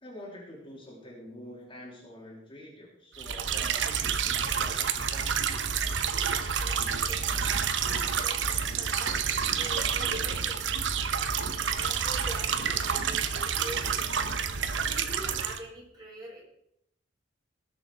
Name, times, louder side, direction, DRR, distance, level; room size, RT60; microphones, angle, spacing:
voice 1, 0.0-5.3, left 1 dB, 30° left, -3 dB, 3.2 m, -46 dB
sound 1, 3.2-15.6, right 7 dB, 80° right, 1.0 m, -29 dB
voice 2, 6.2-7.5 7.8-10.6 11.8-14.0 14.8-16.4, equal, 20° right, -3 dB, 4.4 m, -45 dB
19.5 x 6.9 x 4.8 m, 0.75 s
head